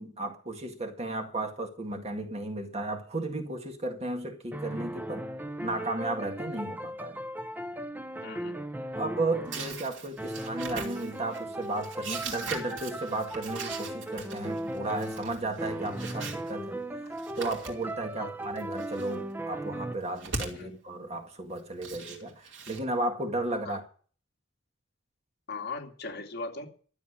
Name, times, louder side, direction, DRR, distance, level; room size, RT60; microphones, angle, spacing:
voice 1, 0.0-5.3 5.6-7.2 9.0-16.8 17.4-23.8, right 2 dB, 35° right, 1.9 m, -34 dB
sound 1, 4.5-9.9 10.2-19.9, right 1 dB, 10° right, 0.6 m, -37 dB
voice 2, 8.2-8.6 18.2-18.3 20.5-20.7 23.6-23.8 25.5-26.7, left 3 dB, 55° left, 2.5 m, -38 dB
sound 2, 9.5-16.5 17.1-18.1 18.4-19.2 19.9-20.6 21.6-22.8, right 4 dB, 70° right, 3.0 m, -41 dB
12.5 x 7.2 x 9.9 m
head